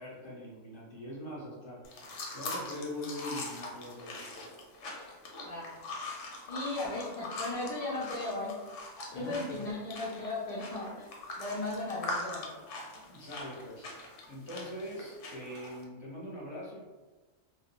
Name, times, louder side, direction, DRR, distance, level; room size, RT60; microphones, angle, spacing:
voice 1, 0.0-4.3 6.4-6.5 9.1-9.6 13.1-13.9 14.3-16.9, left 1 dB, 30° left, -5 dB, 0.6 m, -42 dB
sound 1, 1.8-15.8, left 2 dB, 90° left, 0.9 m, -42 dB
voice 2, 6.5-8.6 9.1-11.1 11.4-12.6, left 2 dB, 70° left, -6 dB, 0.3 m, -36 dB
2.3 x 2.1 x 2.8 m, 1.3 s
omnidirectional pair, 1.2 m